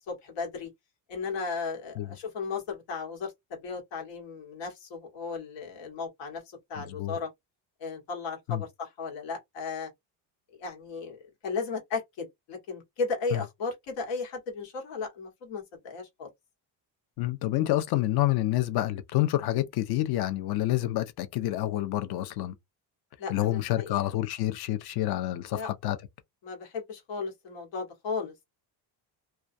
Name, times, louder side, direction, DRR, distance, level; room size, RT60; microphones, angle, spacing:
voice 1, 0.1-0.7 1.1-6.4 6.7-7.3 7.8-9.9 10.5-16.3 23.2-24.1 25.5-25.7 26.4-28.4, left 4 dB, 90° left, 1.4 m, -35 dB
voice 2, 6.8-7.2 8.5-8.6 13.3-13.4 17.2-22.5 23.3-26.0, left 15 dB, 55° left, 0.6 m, -28 dB
2.3 x 2.2 x 2.6 m
cardioid pair, 140°, 45 cm